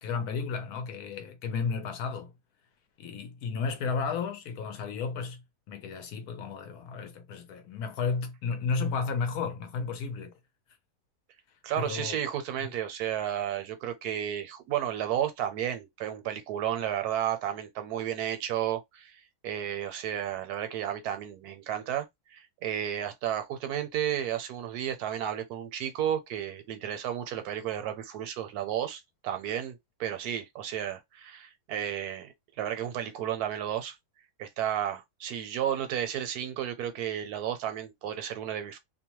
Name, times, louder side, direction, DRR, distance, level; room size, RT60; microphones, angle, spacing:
voice 1, 0.0-2.3 3.0-10.3 11.8-12.2 12.6-12.7, left 5 dB, 75° left, 1.1 m, -33 dB
voice 2, 11.6-32.3 32.6-34.0 34.4-38.8, right 10 dB, 80° right, 1.1 m, -32 dB
2.7 x 2.1 x 2.9 m
omnidirectional pair, 1.7 m